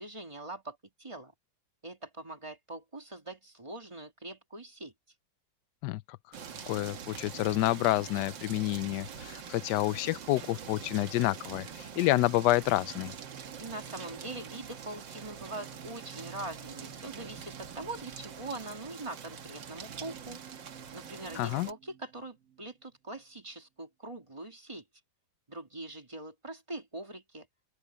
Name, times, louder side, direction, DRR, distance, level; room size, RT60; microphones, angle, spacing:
voice 1, 0.0-1.3 1.8-4.9 13.6-20.4 20.9-24.8 25.5-27.5, right 2 dB, 15° right, 2.1 m, -43 dB
voice 2, 5.8-6.2 6.7-13.1 21.3-21.7, left 16 dB, 75° left, 1.0 m, -29 dB
sound 1, 6.3-21.7, right 7 dB, 65° right, 2.2 m, -45 dB
sound 2, 11.0-23.2, right 7 dB, 50° right, 1.5 m, -54 dB
open air
omnidirectional pair, 2.2 m